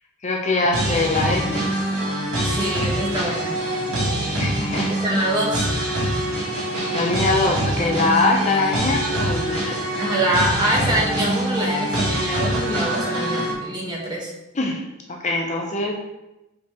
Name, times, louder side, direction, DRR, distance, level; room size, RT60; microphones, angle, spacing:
voice 1, 0.2-1.7 4.3-4.9 6.9-9.8 14.5-14.8 15.1-15.9, left 2 dB, 30° left, 0 dB, 0.6 m, -22 dB
sound 1, 0.7-13.5, right 1 dB, 65° right, 2.2 m, -24 dB
voice 2, 2.4-3.6 5.0-5.7 10.0-14.3, right 1 dB, 20° right, -2 dB, 1.1 m, -24 dB
6.0 x 4.9 x 3.5 m, 0.96 s
head